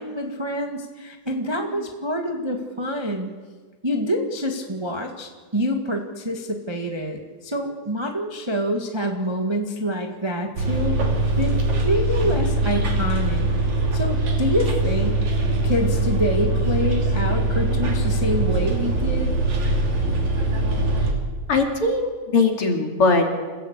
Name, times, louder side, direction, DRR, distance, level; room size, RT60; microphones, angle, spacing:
voice 1, 0.0-3.3 3.8-11.0 11.4-11.5 11.8-13.5 13.9-15.2 15.6-19.3, equal, 15° right, 2 dB, 1.1 m, -26 dB
Bus, 10.6-21.1, right 2 dB, 65° right, 4.6 m, -22 dB
voice 2, 21.5-23.3, left 3 dB, 45° left, 2 dB, 3.3 m, -20 dB
28.5 x 16.0 x 8.2 m, 1.4 s
omnidirectional pair, 3.6 m